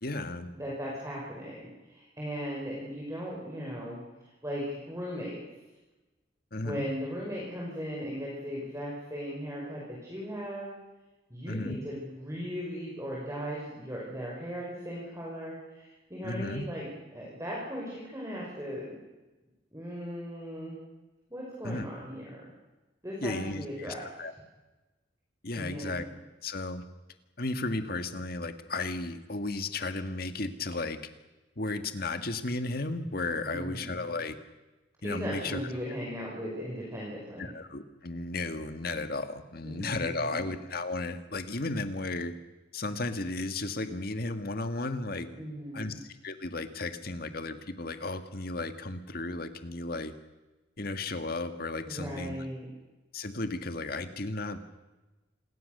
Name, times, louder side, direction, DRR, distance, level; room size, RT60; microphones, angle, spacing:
voice 1, 0.0-0.5 6.5-6.8 11.5-11.8 16.2-16.6 21.6-21.9 23.2-24.3 25.4-26.0 26.4-26.8 27.4-31.0 31.5-34.3 35.0-35.6 37.4-42.3 42.7-45.3 45.7-50.1 50.8-52.3 53.1-54.6, left 2 dB, 55° left, 8 dB, 1.8 m, -34 dB
voice 2, 0.6-4.0 4.4-5.4 6.6-10.7 11.3-19.0 19.7-20.8 21.3-22.5 23.0-24.0 25.5-26.0 33.4-34.2 35.0-37.5 39.6-40.5 45.3-46.0 51.9-52.7, equal, 15° right, -4 dB, 5.7 m, -38 dB
27.5 x 21.0 x 6.8 m, 1.1 s
head